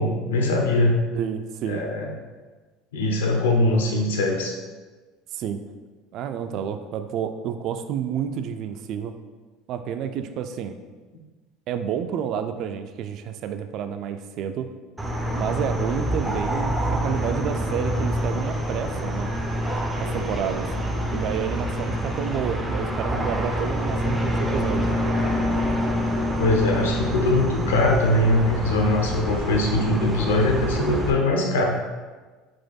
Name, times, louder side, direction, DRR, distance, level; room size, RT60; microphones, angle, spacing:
voice 1, 0.0-1.0 1.7-2.1 2.9-4.5 6.4-6.5 26.4-31.6, left 1 dB, 90° left, 1 dB, 0.7 m, -22 dB
voice 2, 1.1-1.8 5.3-5.6 6.1-9.1 9.7-10.7 11.7-14.7 15.3-19.3 20.0-20.7 21.1-24.9, right 8 dB, 60° right, 9 dB, 0.3 m, -30 dB
sound 1, 15.0-31.1, equal, 10° right, 0.7 m, -26 dB
4.7 x 4.3 x 2.3 m, 1.3 s
hypercardioid pair, 85°, 0 cm